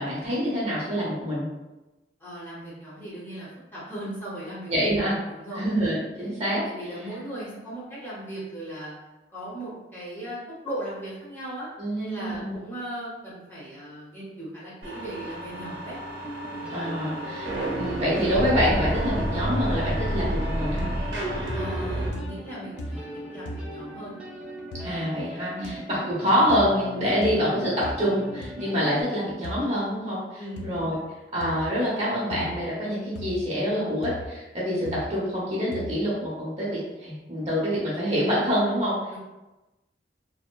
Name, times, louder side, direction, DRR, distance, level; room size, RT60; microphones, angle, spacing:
voice 1, 0.0-1.5 4.7-5.2 5.5-6.6 11.8-12.6 16.7-20.9 24.8-31.0 31.3-38.9, equal, 35° right, -7 dB, 0.7 m, -26 dB
voice 2, 2.2-5.7 6.2-6.3 6.6-8.9 9.3-16.0 21.5-24.1 25.5-25.8 27.0-27.1 30.4-30.6 39.1-39.2, right 1 dB, 10° left, -9 dB, 0.8 m, -38 dB
sound 1, 14.8-22.1, right 1 dB, 75° right, 0.6 m, -30 dB
sound 2, 16.2-29.0, equal, 5° right, 0.4 m, -40 dB
sound 3, 20.1-20.5 20.8-21.2 21.5-21.9 22.1-22.5 22.8-23.1 23.4-23.7 24.7-24.9 25.6-25.7 26.5-26.7 27.2-27.4 27.8-28.0 28.4-28.5 29.4-29.6 30.6-30.8 31.4-31.7 32.3-32.6 33.1-33.4 34.0-34.3 34.8-35.1 35.7-36.0, left 1 dB, 75° left, 0.3 m, -37 dB
2.8 x 2.1 x 2.2 m, 1.0 s
head